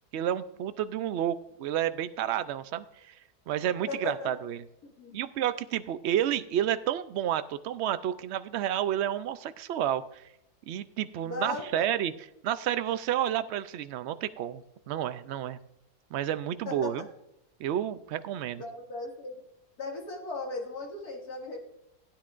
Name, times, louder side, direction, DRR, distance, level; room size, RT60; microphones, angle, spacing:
voice 1, 0.1-3.2 3.5-4.6 5.1-10.2 10.7-12.1 12.4-15.6 16.1-17.1 17.6-18.6, right 11 dB, 75° right, 13 dB, 0.6 m, -30 dB
voice 2, 3.9-4.3 5.0-5.3 11.2-11.9 16.7-16.9 18.6-19.4 19.8-21.6, left 3 dB, 70° left, 0 dB, 2.6 m, -37 dB
16.0 x 9.6 x 2.5 m, 0.81 s
omnidirectional pair, 1.7 m